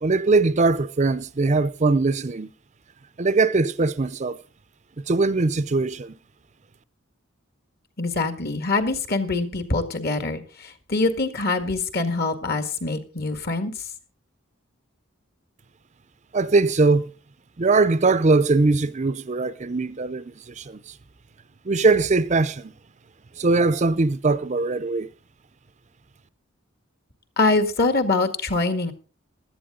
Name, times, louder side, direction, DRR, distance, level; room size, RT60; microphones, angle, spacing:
voice 1, 0.0-2.5 3.2-4.4 5.1-6.1 16.3-17.1 17.6-20.8 21.7-22.7 23.4-25.1, right 3 dB, 35° right, 0.6 m, -21 dB
voice 2, 8.0-13.7 27.4-28.9, left 3 dB, 50° left, 1.9 m, -24 dB
16.5 x 12.0 x 3.8 m
head